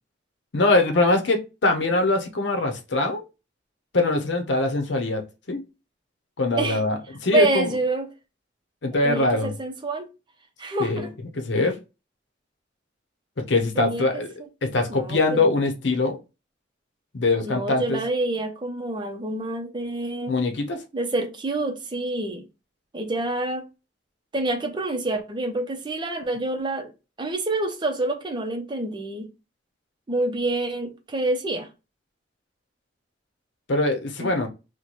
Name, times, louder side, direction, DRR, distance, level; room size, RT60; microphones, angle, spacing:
voice 1, 0.5-3.2 3.9-5.6 6.4-7.7 8.8-9.5 10.8-11.1 11.3-11.8 13.4-14.3 14.6-16.2 17.1-18.0 20.3-20.8 33.7-34.5, left 2 dB, 75° left, 0.7 m, -23 dB
voice 2, 7.3-8.1 9.0-10.1 10.6-11.1 13.8-14.1 14.9-15.4 17.4-20.3 20.9-22.4 22.9-23.6 24.3-26.9 27.2-29.3 30.1-31.7 34.2-34.3, right 2 dB, 25° right, 0.6 m, -27 dB
3.1 x 2.1 x 4.0 m
head